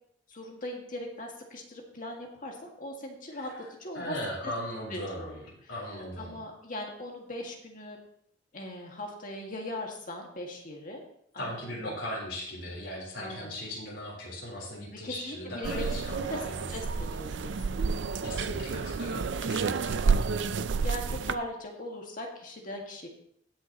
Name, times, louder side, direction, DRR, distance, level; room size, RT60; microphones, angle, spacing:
voice 1, 0.3-3.5 3.8-4.1 4.9-5.4 6.2-8.0 8.5-11.0 11.3-11.6 11.8-12.0 13.2-13.5 15.0-15.8 16.1-16.4 16.7-17.8 20.8-23.1, left 1 dB, 45° left, 0 dB, 1.9 m, -39 dB
voice 2, 3.4-3.7 3.9-6.4 11.4-17.0 18.2-20.1, equal, 90° left, -5 dB, 3.9 m, -38 dB
sound 1, 15.6-21.3, right 5 dB, 75° right, 0.5 m, -30 dB
17.0 x 6.3 x 3.0 m, 0.68 s
head